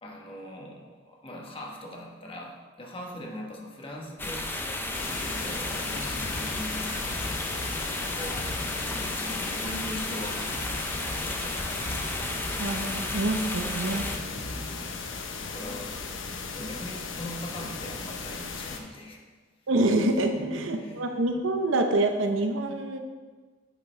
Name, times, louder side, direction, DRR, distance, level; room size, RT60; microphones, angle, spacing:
voice 1, 0.0-7.5 7.8-8.6 8.8-10.8 11.1-11.9 14.3-16.0 16.5-19.2 20.4-21.1, equal, 30° left, -1 dB, 1.2 m, -41 dB
sound 1, 4.2-14.2, left 2 dB, 10° left, 0.6 m, -33 dB
sound 2, 4.9-18.8, left 4 dB, 75° left, 0.9 m, -37 dB
sound 3, 5.4-14.8, left 1 dB, 55° left, 1.6 m, -42 dB
voice 2, 12.6-14.0 19.7-23.0, right 2 dB, 80° right, 5 dB, 0.8 m, -26 dB
9.2 x 7.4 x 3.3 m, 1.4 s
head